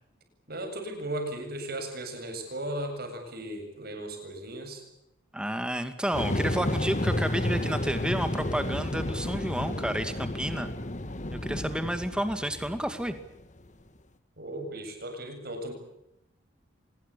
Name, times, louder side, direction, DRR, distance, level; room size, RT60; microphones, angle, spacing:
voice 1, 0.5-4.8 14.4-15.7, right 1 dB, 50° right, 5 dB, 7.8 m, -36 dB
voice 2, 5.3-10.7 11.3-13.2, right 1 dB, 5° right, 9 dB, 2.2 m, -31 dB
sound 1, 6.1-13.6, left 1 dB, 40° left, 1.5 m, -31 dB
25.5 x 21.0 x 8.5 m, 0.83 s
head